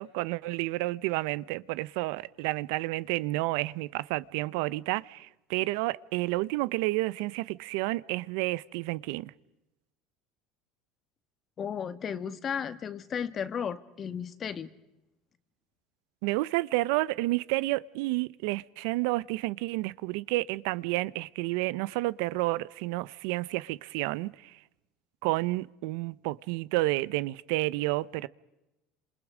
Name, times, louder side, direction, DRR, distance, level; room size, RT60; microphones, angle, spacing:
voice 1, 0.0-9.3 16.2-24.6 25.2-28.3, right 20 dB, 80° right, 0.7 m, -30 dB
voice 2, 11.6-14.7, left 7 dB, 35° left, 1.6 m, -34 dB
28.0 x 27.0 x 5.0 m
supercardioid pair, 120°, 0 cm